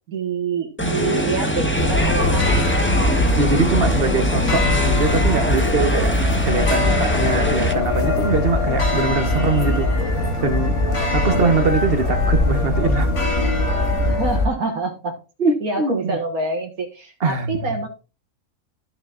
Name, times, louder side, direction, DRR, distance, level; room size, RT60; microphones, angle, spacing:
voice 1, 0.1-2.7 14.1-15.2 15.6-17.9, right 3 dB, 80° right, 2.1 m, -26 dB
sound 1, 0.8-7.7, equal, 10° left, 1.3 m, -23 dB
sound 2, 1.8-14.5, left 2 dB, 55° left, 2.3 m, -22 dB
voice 2, 3.4-6.1 6.4-10.8 11.1-13.3 15.4-16.2 17.2-17.7, right 4 dB, 45° right, 1.5 m, -22 dB
sound 3, 4.3-14.1, left 2 dB, 75° left, 2.9 m, -28 dB
14.0 x 6.6 x 2.6 m
omnidirectional pair, 1.5 m